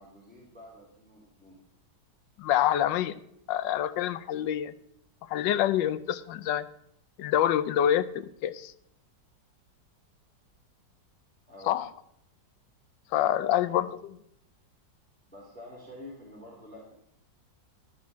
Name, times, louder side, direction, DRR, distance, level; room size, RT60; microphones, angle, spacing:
voice 1, 0.0-1.6 11.5-11.8 13.5-13.9 15.3-16.9, left 1 dB, 5° left, -5 dB, 2.9 m, -48 dB
voice 2, 2.4-3.2 3.5-4.7 5.3-6.7 7.2-8.7 11.7-11.9 13.1-13.9, left 11 dB, 80° left, 15 dB, 1.3 m, -26 dB
12.5 x 5.3 x 8.2 m, 0.75 s
omnidirectional pair, 2.0 m